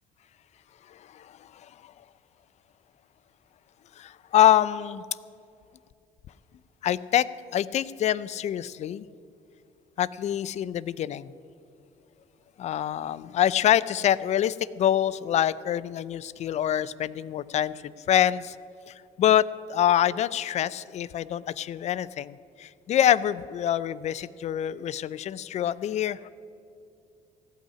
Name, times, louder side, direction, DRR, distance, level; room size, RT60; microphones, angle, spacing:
voice 1, 0.9-1.9 4.0-5.0 6.8-7.3 7.5-9.0 10.0-11.3 12.6-18.6 18.9-26.3, left 11 dB, 50° left, 18 dB, 0.4 m, -25 dB
16.0 x 5.7 x 9.9 m, 2.5 s
cardioid pair, 90°, 14 cm